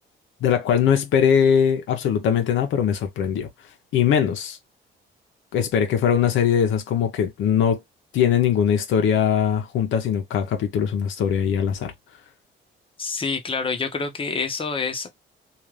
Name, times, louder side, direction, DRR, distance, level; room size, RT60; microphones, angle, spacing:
voice 1, 0.4-3.5 3.9-4.6 5.5-7.8 8.1-11.9, left 8 dB, 80° left, 0.7 m, -21 dB
voice 2, 13.0-15.1, left 4 dB, 25° left, 0.8 m, -27 dB
2.5 x 2.4 x 3.1 m
cardioid pair, 90°, 20 cm